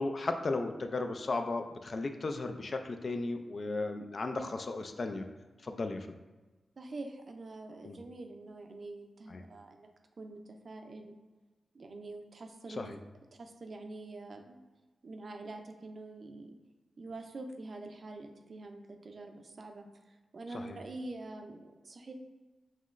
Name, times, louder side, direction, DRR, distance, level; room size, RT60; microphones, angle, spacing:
voice 1, 0.0-5.2 5.6-6.2 7.8-8.0 9.3-9.4 12.8-13.0 20.6-20.8, left 3 dB, 45° left, 6 dB, 0.3 m, -35 dB
voice 2, 6.8-9.9 10.2-11.1 11.7-13.0 13.4-14.6 15.0-16.5 17.0-22.1, right 2 dB, 45° right, 5 dB, 0.4 m, -45 dB
5.6 x 3.1 x 2.4 m, 1.2 s
wide cardioid pair, 130°, 0 cm